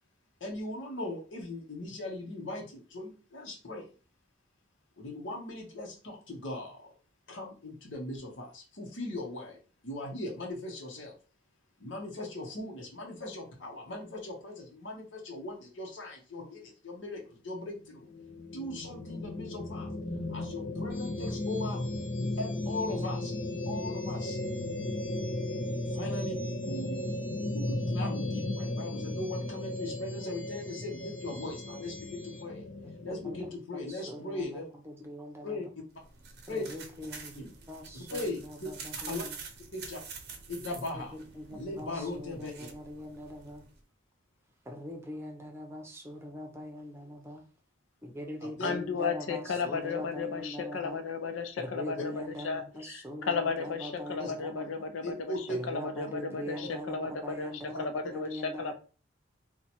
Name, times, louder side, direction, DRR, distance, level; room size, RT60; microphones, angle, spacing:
voice 1, 0.4-3.9 5.0-6.9 7.3-9.6 9.8-11.1 11.8-18.1 18.5-19.9 20.3-21.8 22.4-23.3 23.6-24.4 25.7-27.0 27.5-32.7 33.0-34.6 35.4-35.6 36.5-36.6 37.4-37.5 37.9-39.2 39.7-40.0 40.5-41.2 41.5-42.7 48.4-48.7 54.2-54.3 55.0-55.6, left 2 dB, 75° left, 0.9 m, -39 dB
sound 1, 17.7-33.5, left 1 dB, 40° left, 0.5 m, -35 dB
sound 2, 20.9-32.4, left 3 dB, 25° left, 1.0 m, -52 dB
voice 2, 33.8-35.6 36.5-39.4 41.4-43.6 44.7-47.4 48.0-51.0 51.6-54.7 55.5-58.7, equal, 15° right, 0.7 m, -42 dB
sound 3, 35.9-43.8, right 5 dB, 55° right, 0.6 m, -47 dB
voice 3, 48.6-57.5 57.8-58.7, left 5 dB, 90° left, 0.5 m, -34 dB
2.8 x 2.2 x 4.1 m
head